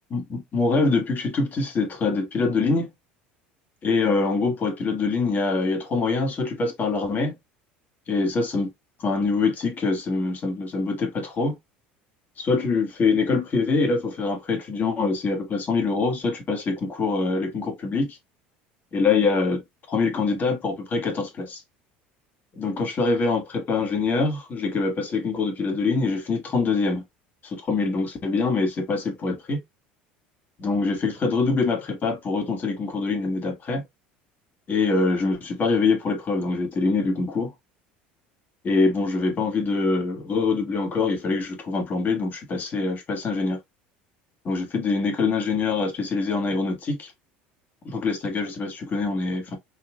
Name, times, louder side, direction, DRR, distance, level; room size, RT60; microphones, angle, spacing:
voice 1, 0.1-2.9 3.8-7.3 8.1-8.7 9.0-11.5 12.4-18.2 18.9-19.6 19.9-21.6 22.6-27.0 27.4-29.6 30.6-33.8 34.7-37.5 38.6-43.6 44.4-47.1 47.8-49.6, left 4 dB, 40° left, 1.7 m, -24 dB
4.2 x 3.3 x 2.3 m
hypercardioid pair, 85°, 5 cm